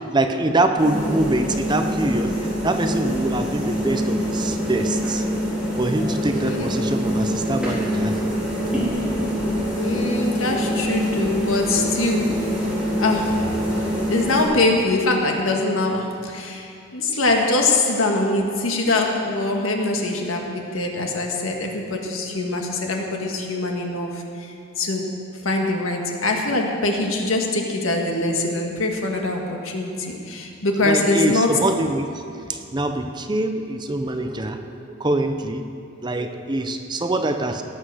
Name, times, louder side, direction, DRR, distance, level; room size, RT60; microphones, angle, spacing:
voice 1, 0.0-5.3 5.8-8.2 30.8-32.2 32.5-34.7 35.0-35.7 36.0-37.6, right 2 dB, 20° right, 7 dB, 0.6 m, -24 dB
sound 1, 0.8-14.4, equal, 5° right, 3.7 m, -25 dB
voice 2, 6.4-6.7 9.8-12.4 13.0-13.6 14.1-25.1 25.4-31.6, left 2 dB, 75° left, 1 dB, 1.7 m, -23 dB
18.0 x 7.7 x 6.3 m, 2.6 s
head